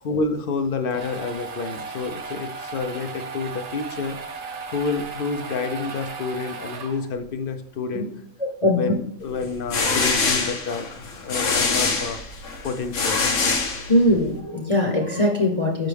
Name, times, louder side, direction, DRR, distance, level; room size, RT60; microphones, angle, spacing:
voice 1, 0.0-4.2 4.7-8.1 8.6-12.2 12.6-13.3, left 4 dB, 55° left, 8 dB, 0.7 m, -29 dB
sound 1, 0.6-7.3, right 4 dB, 50° right, 0.4 m, -36 dB
voice 2, 8.4-8.8 13.8-15.9, left 1 dB, 30° left, -1 dB, 1.0 m, -21 dB
sound 2, 9.4-14.3, left 4 dB, 70° left, 1.3 m, -24 dB
6.0 x 5.8 x 3.3 m, 0.77 s
omnidirectional pair, 1.4 m